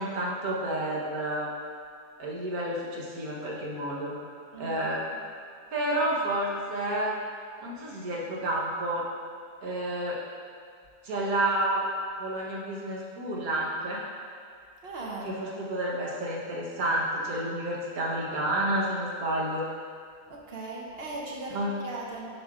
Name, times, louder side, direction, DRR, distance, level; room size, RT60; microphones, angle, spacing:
voice 1, 0.0-1.5 2.2-4.1 4.6-5.0 5.7-7.1 7.6-9.1 9.6-10.2 11.0-11.8 12.2-14.0 15.2-19.7 21.5-21.7, right 1 dB, 90° right, -4 dB, 1.5 m, -30 dB
voice 2, 14.8-15.3 20.3-22.3, right 2 dB, 50° right, -3 dB, 1.0 m, -38 dB
9.4 x 5.3 x 2.4 m, 2.2 s
omnidirectional pair, 1.5 m